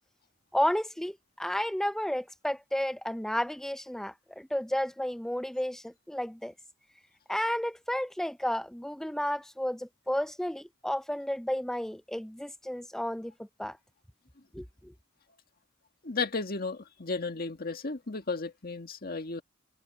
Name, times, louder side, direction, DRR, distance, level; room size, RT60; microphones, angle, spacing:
voice 1, 0.5-6.5 7.3-13.3 13.6-13.8 14.5-14.9, equal, ahead, 0.4 m, -32 dB
voice 2, 16.0-19.4, left 4 dB, 50° left, 1.8 m, -34 dB
head